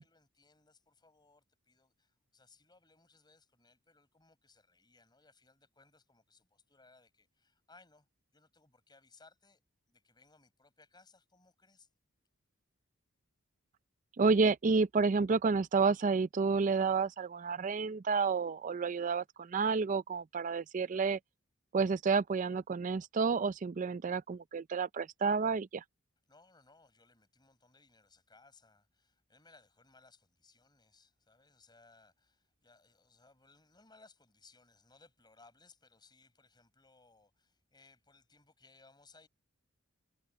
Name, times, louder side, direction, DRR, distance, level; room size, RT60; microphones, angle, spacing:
voice 1, 0.0-8.1 8.3-9.6 9.9-11.9 26.3-39.3, left 3 dB, 20° left, 5.4 m, -64 dB
voice 2, 14.2-21.2 21.7-25.8, right 4 dB, 35° right, 0.4 m, -30 dB
head